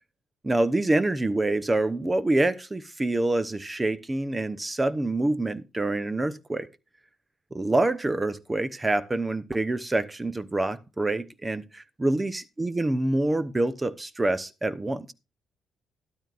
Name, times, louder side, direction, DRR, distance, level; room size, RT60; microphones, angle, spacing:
voice 1, 0.4-6.7 7.5-15.1, right 2 dB, 20° right, 0.9 m, -26 dB
12.5 x 12.5 x 2.5 m
cardioid pair, 90°, 0 cm